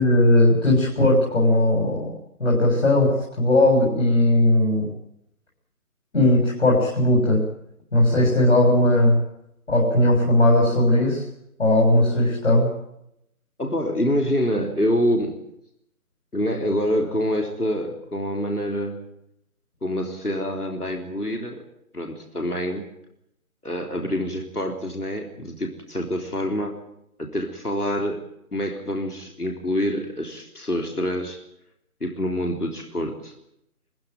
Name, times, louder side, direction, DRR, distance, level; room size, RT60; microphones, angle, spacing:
voice 1, 0.0-2.1 2.4-4.9 6.1-7.4 7.9-9.2 9.7-11.2 11.6-12.7, left 1 dB, 50° left, -3 dB, 7.1 m, -18 dB
voice 2, 13.6-15.4 16.3-19.0 19.8-21.6 21.9-22.8 23.6-26.7 27.2-28.2 28.5-31.4 32.0-33.3, equal, 85° left, 3 dB, 3.9 m, -26 dB
24.0 x 15.5 x 9.3 m, 0.79 s
figure-of-eight pair, 155°, 45 cm